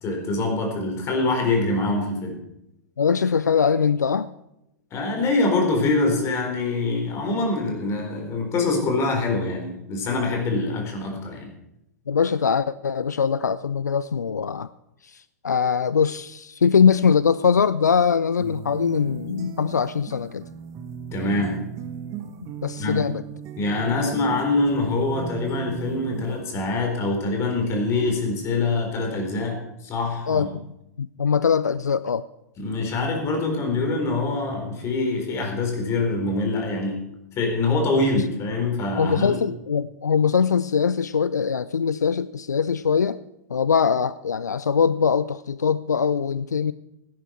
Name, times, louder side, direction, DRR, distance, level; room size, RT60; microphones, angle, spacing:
voice 1, 0.0-2.4 4.9-11.5 21.1-21.6 22.8-23.0 23.6-30.5 32.6-37.0 37.4-39.4, left 3 dB, 30° left, 2 dB, 4.1 m, -24 dB
voice 2, 3.0-4.3 12.1-14.7 15.1-20.5 22.6-23.2 30.3-30.5 31.0-32.2 39.0-43.2 43.5-46.7, left 6 dB, 85° left, 17 dB, 0.4 m, -22 dB
sound 1, 18.4-26.4, right 8 dB, 35° right, 1.2 m, -37 dB
16.0 x 10.5 x 4.5 m, 0.85 s
figure-of-eight pair, 100°, 9 cm